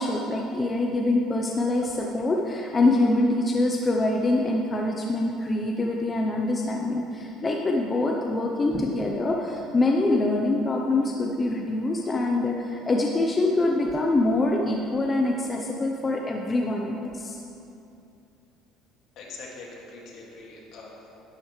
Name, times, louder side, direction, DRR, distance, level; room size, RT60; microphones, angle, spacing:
voice 1, 0.0-17.4, left 2 dB, 20° left, 0 dB, 0.7 m, -25 dB
voice 2, 19.2-21.2, left 3 dB, 60° left, -3 dB, 2.2 m, -43 dB
11.5 x 10.5 x 3.2 m, 2.7 s
cardioid pair, 130°, 0 cm